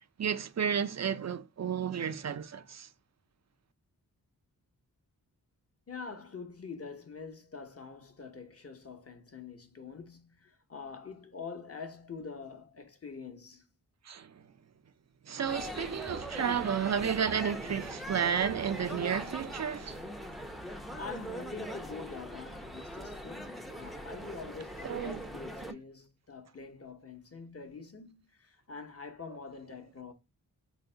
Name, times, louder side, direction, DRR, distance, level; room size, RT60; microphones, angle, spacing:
voice 1, 0.2-2.9 14.1-14.3 15.3-20.1 24.8-25.2, right 7 dB, 45° right, 0.5 m, -32 dB
voice 2, 5.9-13.6 20.9-30.1, left 5 dB, 40° left, 1.0 m, -45 dB
sound 1, 15.5-25.7, equal, ahead, 0.6 m, -41 dB
3.8 x 2.0 x 4.4 m
cardioid pair, 45°, 38 cm